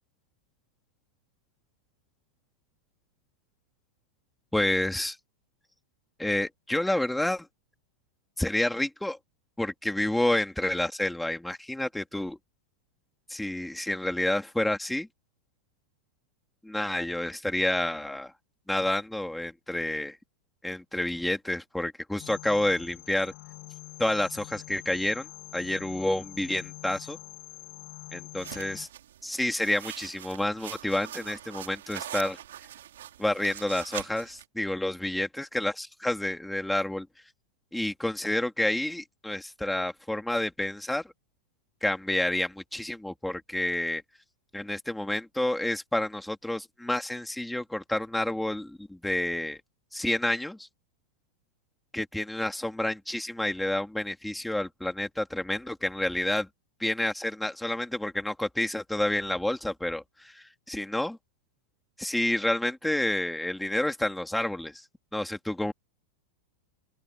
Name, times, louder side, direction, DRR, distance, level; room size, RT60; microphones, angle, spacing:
voice 1, 4.5-5.2 6.2-7.5 8.4-9.2 9.6-12.4 13.3-15.1 16.6-18.3 18.7-20.2 20.6-23.3 24.0-27.2 28.1-28.9 29.2-32.4 33.2-37.1 37.7-41.0 41.8-44.0 44.5-49.6 49.9-50.7 51.9-56.5 56.8-61.2 62.0-64.8 65.1-65.7, left 1 dB, 5° left, 2.7 m, -29 dB
sound 1, 22.2-28.9, left 24 dB, 50° left, 2.8 m, -45 dB
sound 2, 28.4-34.4, right 11 dB, 85° right, 3.2 m, -42 dB
open air
supercardioid pair, 140°, 0 cm